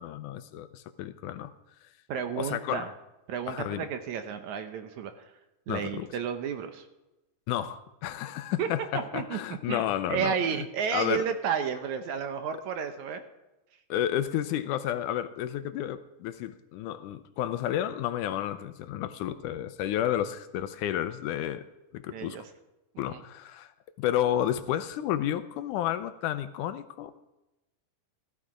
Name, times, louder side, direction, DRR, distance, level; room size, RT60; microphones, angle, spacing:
voice 1, 0.0-1.5 2.4-2.9 3.5-3.9 5.7-6.1 7.5-10.3 10.9-11.2 13.9-21.6 21.9-22.4 23.0-23.7 24.0-27.3, left 11 dB, 80° left, 11 dB, 2.0 m, -31 dB
voice 2, 2.1-2.9 3.3-5.3 5.7-6.9 8.6-8.7 8.9-9.4 9.7-9.8 10.1-13.2 22.1-22.4 23.0-23.2, right 7 dB, 70° right, 8 dB, 2.1 m, -32 dB
15.0 x 12.0 x 5.0 m, 0.99 s
omnidirectional pair, 3.8 m